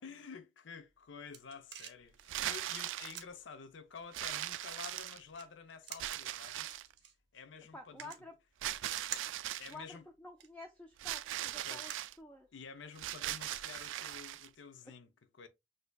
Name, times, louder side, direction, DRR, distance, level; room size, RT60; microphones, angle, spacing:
voice 1, 0.0-6.8 7.3-8.1 9.6-10.0 11.6-12.0 12.5-15.5, left 5 dB, 80° left, 0.5 m, -50 dB
sound 1, 0.8-12.8, right 9 dB, 70° right, 0.8 m, -53 dB
sound 2, 2.2-3.2 4.1-5.4 6.0-6.9 8.6-9.7 11.0-12.1 13.0-14.5, right 13 dB, 85° right, 0.3 m, -39 dB
voice 2, 7.7-8.3 9.7-11.9 12.2-12.5, left 2 dB, 5° left, 0.4 m, -50 dB
6.4 x 2.6 x 2.2 m
head